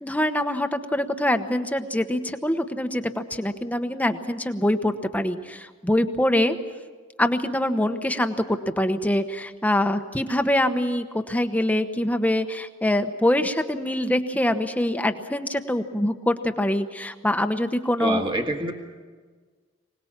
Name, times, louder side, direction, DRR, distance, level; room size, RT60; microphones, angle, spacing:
voice 1, 0.0-6.6 7.2-18.2, left 1 dB, 10° left, 8 dB, 1.0 m, -24 dB
voice 2, 18.0-18.7, right 1 dB, 25° right, 4 dB, 1.6 m, -26 dB
25.5 x 19.0 x 7.4 m, 1.5 s
head